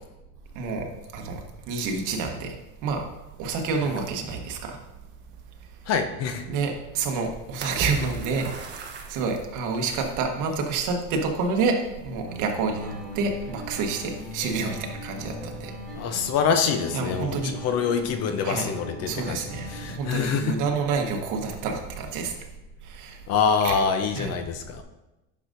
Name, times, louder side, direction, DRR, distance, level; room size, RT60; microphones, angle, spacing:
voice 1, 0.5-0.9 1.1-1.4 1.7-2.6 2.8-3.0 3.4-4.8 6.5-8.8 9.1-11.8 12.0-15.7 16.9-17.5 18.4-18.7 19.1-22.3 22.8-23.2 23.6-23.8 24.2-24.3, right 4 dB, 50° right, 3 dB, 1.4 m, -28 dB
sound 1, 3.0-9.7, right 3 dB, 30° right, 1.1 m, -40 dB
voice 2, 5.9-6.5 16.0-20.6 23.3-24.8, left 6 dB, 40° left, 7 dB, 0.8 m, -25 dB
sound 2, 12.3-20.2, left 1 dB, ahead, 2.7 m, -40 dB
10.0 x 6.5 x 2.7 m, 0.98 s
supercardioid pair, 135°, 38 cm